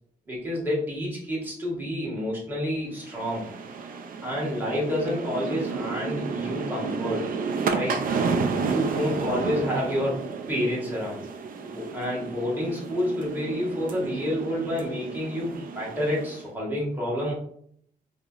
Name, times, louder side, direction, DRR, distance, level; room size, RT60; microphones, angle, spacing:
voice 1, 0.3-3.4 4.2-7.3 7.7-8.0 8.6-11.2 11.6-17.3, left 1 dB, 15° right, -5 dB, 1.4 m, -29 dB
sound 1, 3.0-16.5, right 5 dB, 65° right, 0.4 m, -31 dB
4.6 x 2.7 x 2.4 m, 0.66 s
wide cardioid pair, 145°, 15 cm